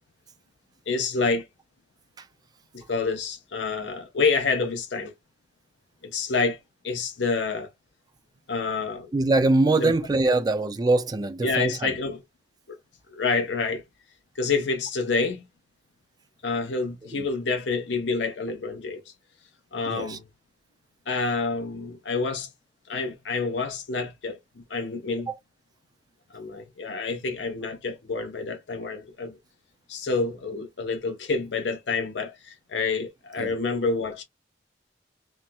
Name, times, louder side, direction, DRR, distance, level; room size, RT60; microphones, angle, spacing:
voice 1, 0.9-1.5 2.7-5.1 6.0-6.6 6.8-7.7 8.5-9.1 9.8-9.9 10.3-10.4 11.4-12.2 12.7-12.8 13.1-13.8 14.4-15.4 16.4-19.0 19.7-20.2 21.1-22.5 22.9-25.3 26.3-29.4 29.9-34.2, left 4 dB, 75° left, 0.7 m, -28 dB
voice 2, 9.1-11.9 17.1-17.3 19.8-20.2 25.3-25.4 33.4-33.5, right 2 dB, 20° right, 0.3 m, -23 dB
4.2 x 2.1 x 2.2 m
head